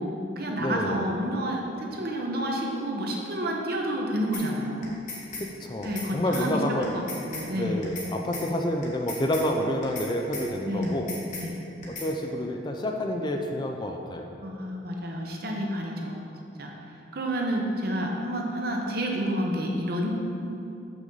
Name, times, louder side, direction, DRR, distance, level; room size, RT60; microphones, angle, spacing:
voice 1, 0.0-4.9 5.8-7.8 10.6-11.0 11.3-11.6 14.4-16.2 16.6-16.7 17.1-20.1, equal, 50° right, 0 dB, 0.9 m, -29 dB
voice 2, 0.6-1.1 5.4-7.0 7.6-11.1 11.9-14.3, left 1 dB, 25° left, 3 dB, 0.4 m, -29 dB
sound 1, 4.3-4.5 4.8-5.5 5.8-6.1 6.3-6.5 6.8-7.5 7.8-8.1 8.3-8.5 8.8-9.5 9.8-10.1 10.3-10.5 10.8-11.5 11.8-12.1, left 3 dB, 40° left, 1.3 m, -37 dB
6.9 x 6.0 x 3.9 m, 2.9 s
head